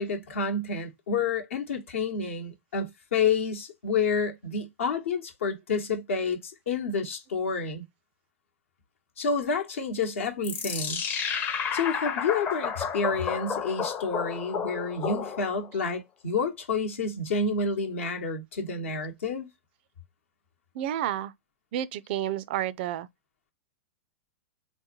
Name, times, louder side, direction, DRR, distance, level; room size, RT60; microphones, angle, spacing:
voice 1, 0.0-7.8 9.2-11.0 11.7-19.5, left 4 dB, 70° left, 0.9 m, -29 dB
sound 1, 10.4-15.7, left 6 dB, 25° left, 0.6 m, -31 dB
voice 2, 20.7-21.3 21.7-23.1, right 11 dB, 50° right, 0.3 m, -30 dB
3.9 x 2.1 x 2.8 m
hypercardioid pair, 105°, 7 cm